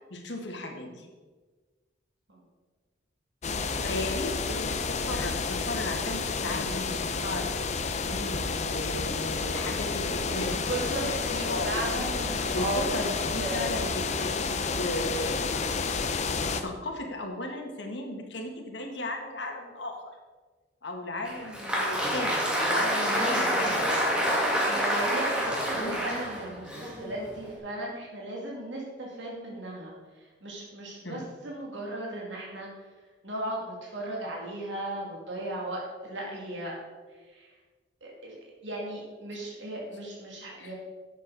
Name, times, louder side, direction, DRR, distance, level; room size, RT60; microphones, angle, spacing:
voice 1, 0.1-1.1 3.8-7.6 8.0-11.2 11.4-12.1 12.5-20.0 20.8-24.4 25.6-26.0 31.0-31.2 40.5-40.7, left 1 dB, 75° left, 2 dB, 1.7 m, -36 dB
sound 1, 3.4-16.6, left 4 dB, 40° left, 0.6 m, -30 dB
voice 2, 10.2-13.0 13.4-13.7 24.7-29.9 30.2-32.7 33.2-36.7 37.3-37.5 38.0-40.7, right 1 dB, 80° right, -3 dB, 2.5 m, -36 dB
Applause, 21.2-27.6, equal, 5° right, 2.0 m, -28 dB
11.5 x 8.2 x 4.0 m, 1.4 s
head